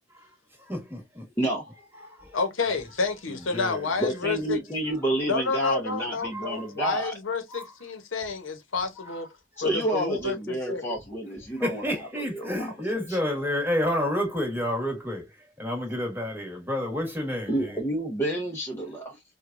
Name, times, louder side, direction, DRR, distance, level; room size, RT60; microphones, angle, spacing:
voice 1, 0.1-1.3 2.0-2.3 3.3-4.1 6.2-6.7 7.5-7.7 9.0-9.2 9.5-9.7 11.6-17.8, left 1 dB, 10° right, 1.2 m, -30 dB
voice 2, 2.3-4.6 5.2-9.3 9.6-10.9, left 4 dB, 80° left, 0.8 m, -29 dB
voice 3, 4.0-7.1 9.6-12.7 12.9-13.2 17.5-19.2, right 1 dB, 10° left, 0.6 m, -29 dB
4.5 x 2.2 x 2.5 m
head